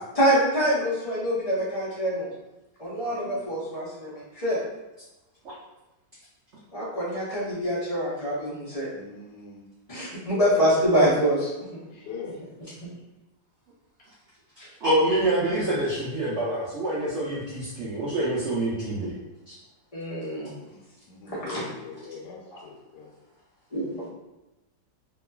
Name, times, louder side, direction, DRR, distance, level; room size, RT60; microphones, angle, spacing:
voice 1, 0.1-2.3 2.8-4.6 6.7-8.9 9.9-11.5 14.6-14.7 19.9-20.5 21.3-21.6 22.5-22.6 23.7-24.0, equal, 35° left, -9 dB, 0.6 m, -25 dB
voice 2, 3.1-3.5 8.9-9.7 11.9-12.3 20.5-20.8 21.1-23.1, left 5 dB, 75° left, -2 dB, 1.2 m, -42 dB
voice 3, 14.8-19.1 19.5-19.6, right 1 dB, 70° right, -8 dB, 0.6 m, -26 dB
2.9 x 2.3 x 2.2 m, 1.0 s
omnidirectional pair, 1.9 m